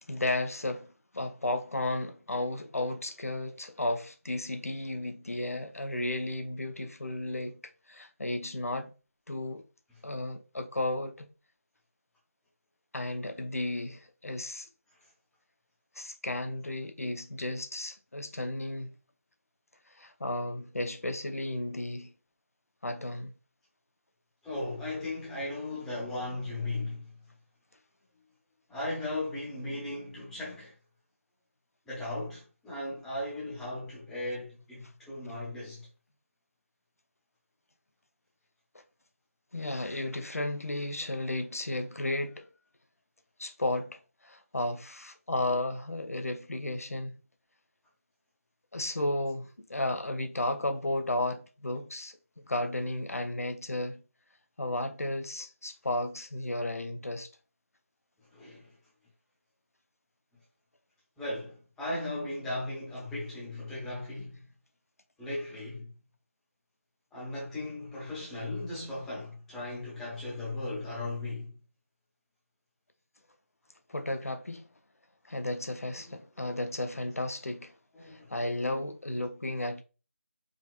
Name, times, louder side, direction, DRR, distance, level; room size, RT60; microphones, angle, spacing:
voice 1, 0.1-0.9 1.1-7.6 7.9-8.9 9.3-9.6 10.0-11.3 12.9-14.7 16.0-18.9 19.9-22.1 22.8-23.3 38.7-38.8 39.5-42.5 43.4-47.2 48.7-54.0 54.6-57.3 73.9-74.7 75.3-77.7 78.0-79.8, left 1 dB, 85° left, 0.7 m, -33 dB
voice 2, 24.4-27.1 28.7-30.7 31.9-35.9 58.2-58.7 61.2-64.4 65.2-65.9 67.1-71.5 76.0-76.2 76.9-77.0 77.9-78.3, left 2 dB, 5° left, 0.9 m, -37 dB
4.9 x 2.8 x 2.2 m
figure-of-eight pair, 160°, 8 cm